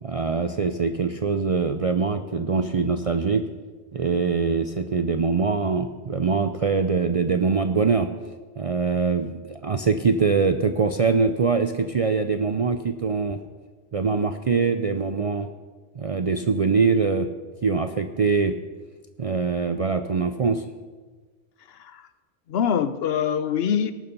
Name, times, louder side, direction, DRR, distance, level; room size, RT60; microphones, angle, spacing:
voice 1, 0.0-3.5 3.9-8.1 8.6-13.4 13.9-15.5 15.9-17.3 17.6-18.6 19.2-20.6, right 4 dB, 50° right, 8 dB, 0.4 m, -23 dB
voice 2, 21.7-22.1 22.5-23.9, left 8 dB, 65° left, 13 dB, 0.8 m, -24 dB
18.0 x 6.9 x 5.3 m, 1.3 s
omnidirectional pair, 1.2 m